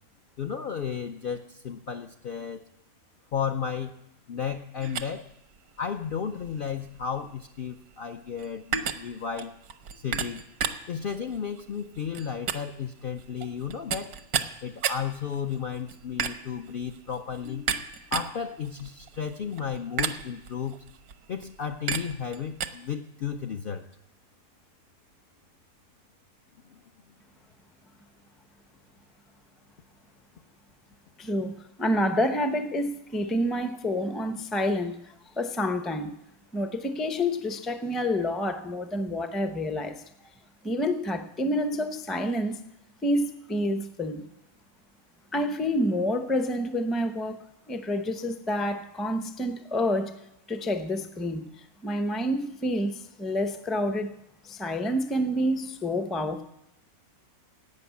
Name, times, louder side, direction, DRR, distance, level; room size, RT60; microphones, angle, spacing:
voice 1, 0.4-2.6 3.3-3.9 4.3-5.2 5.8-9.5 10.0-10.4 10.9-14.2 14.6-17.8 18.1-20.8 21.3-23.9 26.6-26.8 36.5-36.7, left 7 dB, 60° left, 5 dB, 0.6 m, -33 dB
sound 1, 4.8-22.7, right 7 dB, 85° right, 1.3 m, -35 dB
voice 2, 31.2-36.2 36.5-40.0 40.6-42.6 43.0-44.3 45.3-47.4 47.7-50.2 50.5-51.5 51.8-54.1 54.4-56.4, left 1 dB, ahead, 8 dB, 0.4 m, -28 dB
12.0 x 8.6 x 8.3 m, 0.86 s
omnidirectional pair, 1.5 m